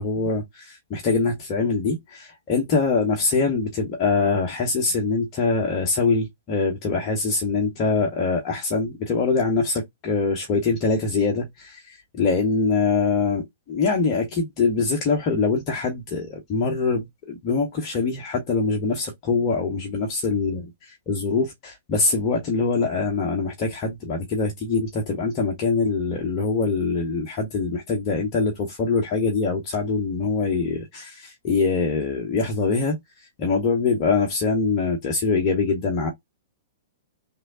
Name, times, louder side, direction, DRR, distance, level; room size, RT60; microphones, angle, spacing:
voice 1, 0.0-33.0 33.4-36.1, left 4 dB, 30° left, 0.8 m, -24 dB
3.1 x 2.1 x 3.6 m
figure-of-eight pair, 110°, 0 cm